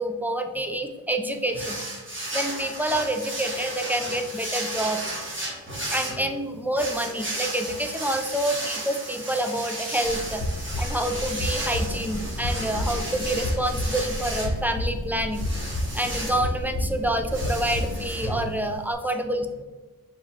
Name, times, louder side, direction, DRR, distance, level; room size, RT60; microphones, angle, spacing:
voice 1, 0.0-1.8 2.3-5.0 5.9-10.4 10.8-15.4 15.9-19.6, right 1 dB, 5° right, 5 dB, 0.4 m, -27 dB
sound 1, 1.5-18.9, right 1 dB, 35° right, 1.4 m, -34 dB
sound 2, 10.0-18.1, left 1 dB, 80° left, 0.8 m, -30 dB
4.9 x 3.7 x 2.8 m, 1.3 s
wide cardioid pair, 75°, 37 cm